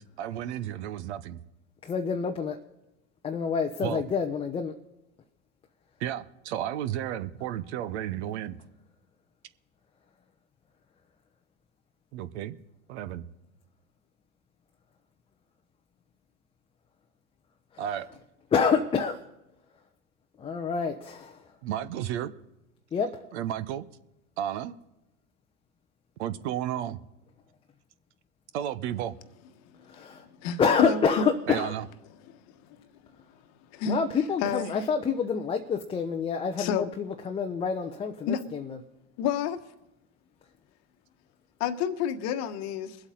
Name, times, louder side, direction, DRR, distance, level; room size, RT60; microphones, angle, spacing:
voice 1, 0.0-1.4 3.8-4.0 6.0-8.6 12.1-12.6 12.9-13.2 17.8-18.1 21.6-22.3 23.3-23.9 24.4-24.8 26.2-27.0 28.5-29.1 31.5-31.9, right 11 dB, 55° right, 13 dB, 0.9 m, -32 dB
voice 2, 1.8-2.6 3.2-4.8 18.5-19.2 20.4-21.4 22.9-23.2 29.9-30.2 30.6-31.7 33.9-38.8, left 6 dB, 15° left, 4 dB, 0.6 m, -27 dB
voice 3, 30.0-31.2 33.7-34.0 34.4-34.8 36.6-36.9 38.2-38.4 39.2-39.6 41.6-43.0, left 7 dB, 40° left, 10 dB, 1.2 m, -30 dB
22.0 x 8.1 x 3.9 m, 0.93 s
hypercardioid pair, 100°, 40 cm